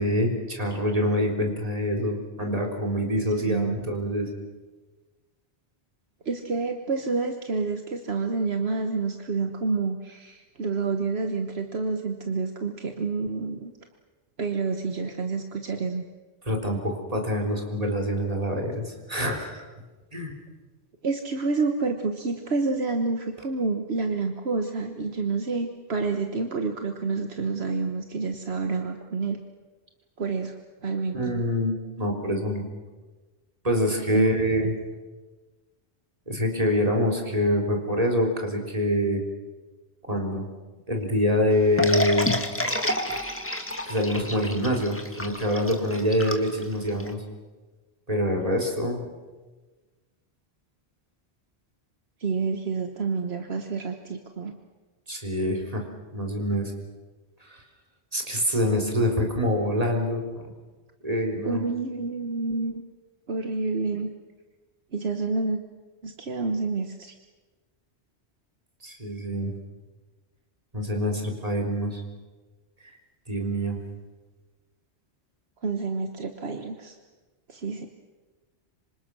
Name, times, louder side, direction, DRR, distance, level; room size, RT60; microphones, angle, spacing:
voice 1, 0.0-4.3 16.5-19.6 20.1-20.3 31.1-32.7 33.6-34.7 36.3-39.2 40.1-40.5 40.9-42.4 43.9-47.2 48.1-49.0 55.1-55.8 56.1-56.7 57.4-57.6 58.1-60.4 61.0-61.6 68.8-69.5 70.7-72.0 73.3-73.8, equal, 35° right, 1 dB, 3.8 m, -25 dB
voice 2, 3.4-3.8 6.2-13.7 14.4-16.1 21.0-29.4 30.2-30.5 30.8-31.2 34.1-34.3 34.6-34.7 52.2-54.6 61.4-62.8 63.3-64.1 64.9-65.6 66.0-67.1 75.6-76.9 77.5-77.9, right 4 dB, 70° right, 5 dB, 1.5 m, -28 dB
sound 1, 41.8-47.1, left 1 dB, 10° left, 1.9 m, -29 dB
26.5 x 25.5 x 6.3 m, 1.3 s
omnidirectional pair, 1.1 m